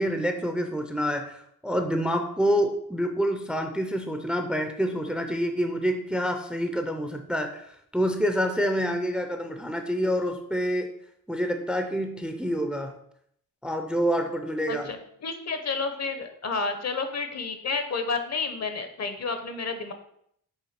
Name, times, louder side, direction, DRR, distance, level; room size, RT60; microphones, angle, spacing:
voice 1, 0.0-10.9 11.3-12.9 13.6-14.9, equal, 5° right, 5 dB, 0.5 m, -27 dB
voice 2, 14.7-19.9, left 4 dB, 50° left, 8 dB, 0.8 m, -30 dB
5.7 x 3.5 x 5.8 m, 0.69 s
wide cardioid pair, 160°, 34 cm